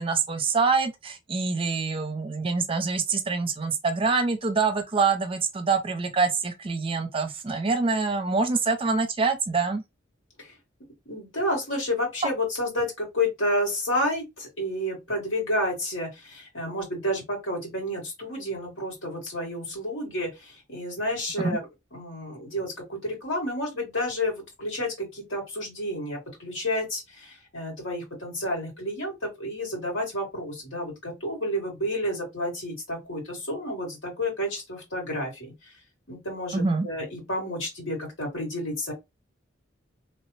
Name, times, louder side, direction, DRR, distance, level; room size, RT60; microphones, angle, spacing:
voice 1, 0.0-9.8 21.4-21.6 36.5-36.9, right 4 dB, 30° right, 0.5 m, -25 dB
voice 2, 11.1-35.7 36.1-38.9, left 1 dB, 90° left, 1.9 m, -30 dB
3.0 x 2.1 x 3.1 m
head